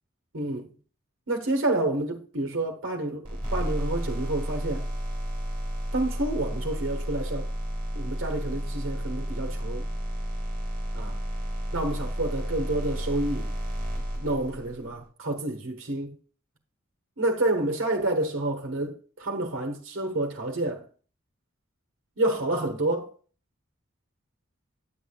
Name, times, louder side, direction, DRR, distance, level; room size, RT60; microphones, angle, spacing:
voice 1, 0.3-0.7 1.3-4.9 5.9-7.5 7.9-9.9 10.9-11.0 11.7-13.5 14.2-16.1 17.2-20.8 22.2-23.1, right 2 dB, 75° right, 1.3 m, -29 dB
sound 1, 3.2-14.9, equal, 25° right, 4.0 m, -32 dB
9.2 x 8.3 x 2.4 m
head